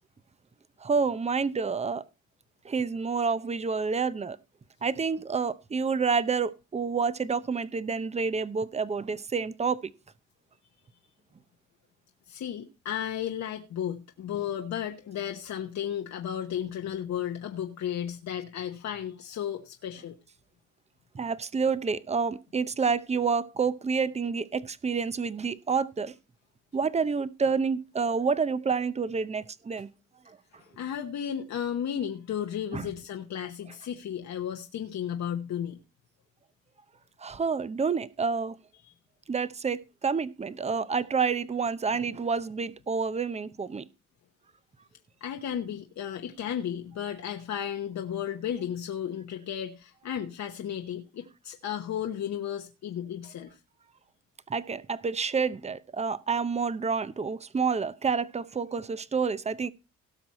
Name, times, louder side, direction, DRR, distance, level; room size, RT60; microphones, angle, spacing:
voice 1, 0.8-2.0 2.6-4.4 4.8-9.9 21.1-26.1 26.7-29.9 30.3-30.4 32.7-32.9 37.2-38.6 39.3-43.9 54.5-59.7, right 5 dB, 20° right, 0.7 m, -28 dB
voice 2, 12.3-20.2 30.5-35.8 45.2-53.6, left 9 dB, 65° left, 1.1 m, -34 dB
17.5 x 6.1 x 4.2 m
cardioid pair, 90°, 30 cm